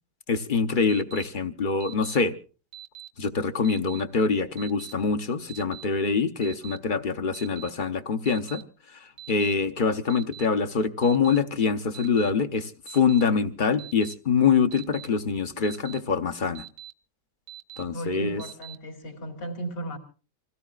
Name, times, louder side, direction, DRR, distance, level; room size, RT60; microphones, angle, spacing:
voice 1, 0.3-2.3 3.2-8.6 8.9-16.6 17.8-18.4, left 5 dB, 40° left, 0.8 m, -25 dB
Alarm, 0.9-1.2 1.8-2.2 2.7-3.1 3.6-4.0 4.6-4.9 5.5-5.8 6.4-6.8 7.3-7.7 8.3-8.6 9.2-9.5 10.1-10.5 11.0-11.4 11.9-12.3 12.9-13.2 13.8-14.1 14.7-15.1 15.6-16.0 16.5-16.9 17.5-17.8 18.4-18.8, right 12 dB, 50° right, 1.1 m, -43 dB
voice 2, 17.9-20.0, right 1 dB, 85° left, 3.5 m, -35 dB
27.0 x 17.0 x 2.4 m
omnidirectional pair, 1.8 m